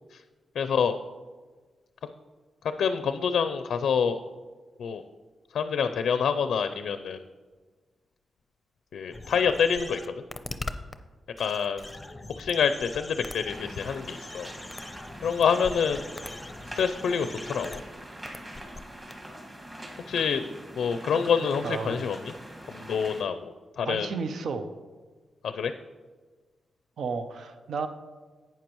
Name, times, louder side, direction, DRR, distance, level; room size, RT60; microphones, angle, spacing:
voice 1, 0.6-1.0 2.8-4.2 4.8-5.0 5.5-7.2 8.9-10.0 11.4-11.9 12.4-14.5 15.2-16.0 16.7-17.8 20.1-20.4 20.8-22.2 22.7-24.1 25.4-25.7, left 6 dB, 80° left, 10 dB, 0.4 m, -26 dB
sound 1, 9.1-10.9 11.4-17.8 18.3-18.8 19.1-19.2, left 2 dB, 15° left, 0.6 m, -41 dB
sound 2, 13.5-23.2, right 1 dB, 20° right, 2.0 m, -44 dB
voice 2, 21.6-22.1 23.8-24.7 27.0-27.9, right 5 dB, 75° right, 8 dB, 0.6 m, -33 dB
11.5 x 8.9 x 3.0 m, 1.4 s
cardioid pair, 95°, 0 cm